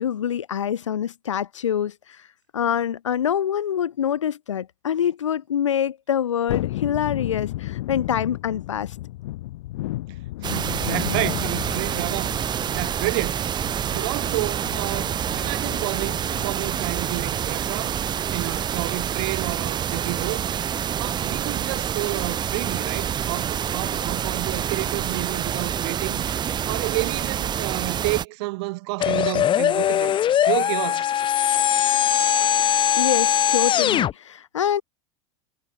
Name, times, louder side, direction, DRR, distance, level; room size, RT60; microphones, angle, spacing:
voice 1, 0.0-2.3 2.5-8.9 32.3-32.5 32.9-34.8, left 9 dB, 90° left, 2.9 m, -25 dB
Thunderstorm, 6.5-16.7 17.0-17.1, left 16 dB, 70° left, 2.6 m, -33 dB
sound 1, 10.4-28.2, right 9 dB, 30° right, 1.1 m, -27 dB
voice 2, 10.4-12.3 12.7-13.5 13.9-18.0 18.3-20.4 21.0-26.4 26.7-30.1 30.4-31.1, right 25 dB, 65° right, 6.5 m, -30 dB
sound 2, 29.0-34.1, left 10 dB, 30° left, 1.2 m, -20 dB
hypercardioid pair, 100°, 15 cm